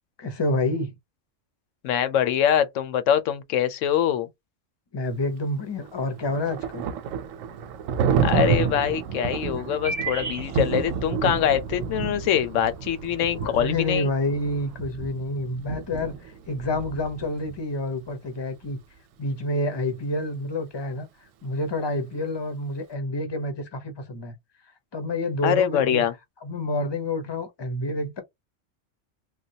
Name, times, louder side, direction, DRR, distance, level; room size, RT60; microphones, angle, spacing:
voice 1, 0.2-0.9 4.9-6.9 13.3-18.8 19.2-21.1 21.4-24.3 24.9-26.0 26.4-28.2, left 2 dB, 30° left, 0.6 m, -28 dB
voice 2, 1.8-4.3 8.2-14.1 25.4-26.1, left 9 dB, 85° left, 1.0 m, -24 dB
Thunder, 5.8-17.6, right 6 dB, 90° right, 0.9 m, -29 dB
sound 1, 8.5-14.7, right 4 dB, 50° right, 0.5 m, -40 dB
3.3 x 2.2 x 2.7 m
omnidirectional pair, 1.3 m